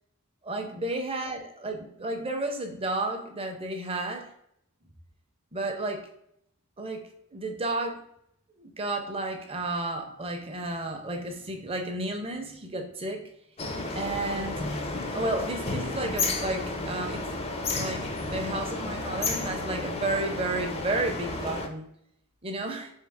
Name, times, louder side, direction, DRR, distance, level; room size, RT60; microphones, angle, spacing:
voice 1, 0.4-4.3 5.5-6.1 6.8-8.0 8.6-13.2 13.9-14.6 15.1-17.3 17.8-21.9 22.4-22.9, right 2 dB, 25° right, 4 dB, 0.6 m, -32 dB
sound 1, 13.6-21.7, left 3 dB, 25° left, 0.5 m, -32 dB
3.6 x 3.6 x 3.5 m, 0.72 s
head